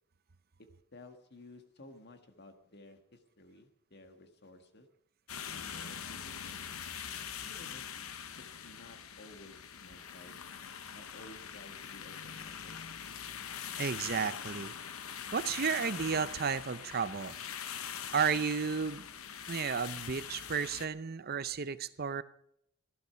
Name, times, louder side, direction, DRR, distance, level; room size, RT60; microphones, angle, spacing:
voice 1, 0.6-4.9 5.5-6.6 7.4-7.8 8.4-10.4 10.9-12.8, left 2 dB, 50° left, 1.6 m, -55 dB
sound 1, 5.3-20.9, left 8 dB, 80° left, 0.9 m, -43 dB
voice 2, 13.8-14.7 15.3-17.4 18.1-19.1 19.5-22.2, right 6 dB, 45° right, 0.6 m, -33 dB
15.5 x 12.0 x 5.8 m
head